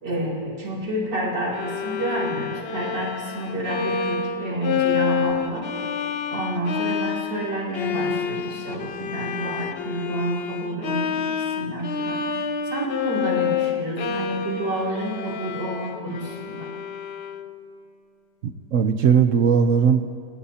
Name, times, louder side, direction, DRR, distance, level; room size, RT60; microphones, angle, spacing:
voice 1, 0.0-5.7 6.3-12.4 12.7-16.7, right 1 dB, 80° right, -4 dB, 3.7 m, -29 dB
Bowed string instrument, 1.5-17.6, left 7 dB, 65° left, 0.6 m, -28 dB
voice 2, 18.4-20.2, right 7 dB, 60° right, 8 dB, 1.0 m, -19 dB
29.0 x 16.5 x 2.9 m, 2.5 s
omnidirectional pair, 1.9 m